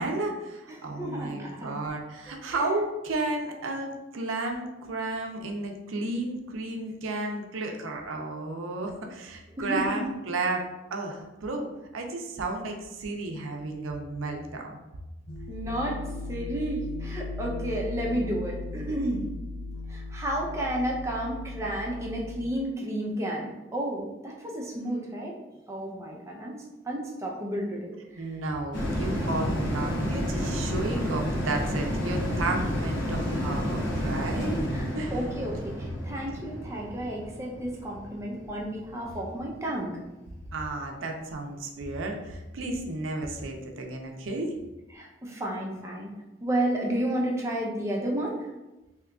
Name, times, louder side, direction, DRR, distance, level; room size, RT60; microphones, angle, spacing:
voice 1, 0.0-10.6 10.9-14.8 28.2-35.1 40.5-44.5, right 2 dB, 90° right, 3 dB, 0.5 m, -33 dB
voice 2, 0.7-1.7 2.3-2.7 9.6-10.0 15.5-19.2 19.9-25.4 25.7-28.3 34.7-40.0 44.9-46.1 46.4-48.5, right 1 dB, 15° right, -2 dB, 0.5 m, -32 dB
sound 1, 15.3-22.4, left 3 dB, 45° left, 0.4 m, -37 dB
sound 2, 28.7-39.4 39.8-39.9, equal, 70° left, 0.9 m, -30 dB
2.8 x 2.3 x 3.5 m, 1.0 s
head